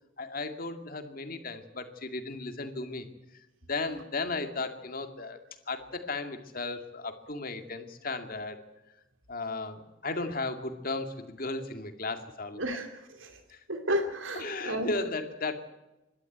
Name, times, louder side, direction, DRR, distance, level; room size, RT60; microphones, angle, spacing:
voice 1, 0.2-3.1 3.7-5.4 5.7-8.6 9.3-12.6 13.5-13.6 14.4-15.5, left 3 dB, 45° left, 6 dB, 2.2 m, -35 dB
voice 2, 12.6-13.4 13.7-14.9, equal, 85° right, 4 dB, 2.5 m, -32 dB
26.0 x 12.5 x 9.3 m, 1.0 s
head